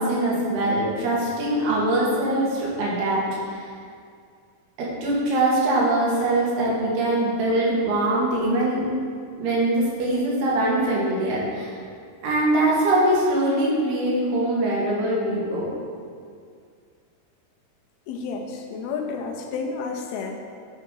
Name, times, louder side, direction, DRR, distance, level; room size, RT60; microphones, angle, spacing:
voice 1, 0.0-3.7 4.8-8.8 9.4-11.7 12.2-15.7, right 1 dB, 90° right, -5 dB, 3.6 m, -22 dB
voice 2, 18.1-20.3, left 5 dB, 80° left, 2 dB, 2.7 m, -31 dB
10.0 x 3.7 x 5.5 m, 2.2 s
omnidirectional pair, 4.5 m